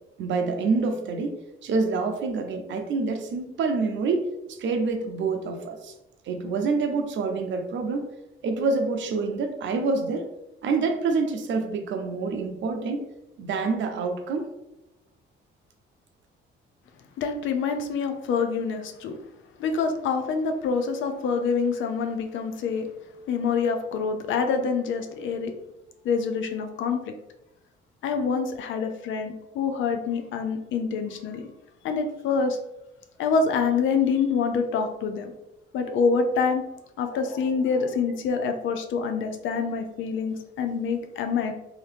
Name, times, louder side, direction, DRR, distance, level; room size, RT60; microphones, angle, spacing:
voice 1, 0.2-5.9 6.3-8.1 8.4-10.3 10.6-13.0 13.4-14.5, right 4 dB, 70° right, 5 dB, 0.6 m, -27 dB
voice 2, 17.2-19.1 19.6-22.9 23.3-25.5 26.0-27.1 28.0-31.5 31.8-32.6 33.2-35.3 35.7-36.6 37.0-41.5, left 5 dB, 80° left, 6 dB, 0.5 m, -26 dB
2.8 x 2.7 x 3.3 m, 0.92 s
cardioid pair, 90°, 20 cm